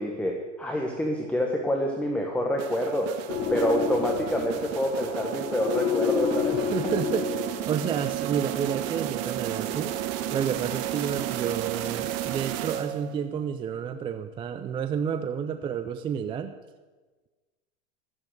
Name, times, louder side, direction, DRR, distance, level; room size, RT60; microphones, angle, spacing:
voice 1, 0.0-3.2 3.5-6.7, equal, 5° left, 1 dB, 1.3 m, -27 dB
sound 1, 2.6-13.3, right 12 dB, 40° right, 1.2 m, -33 dB
sound 2, 3.3-7.9, left 8 dB, 35° left, 1.9 m, -30 dB
voice 2, 6.7-7.3 7.7-9.9 10.3-16.5, right 8 dB, 15° right, 10 dB, 0.3 m, -30 dB
14.5 x 7.8 x 7.9 m, 1.3 s
hypercardioid pair, 110°, 38 cm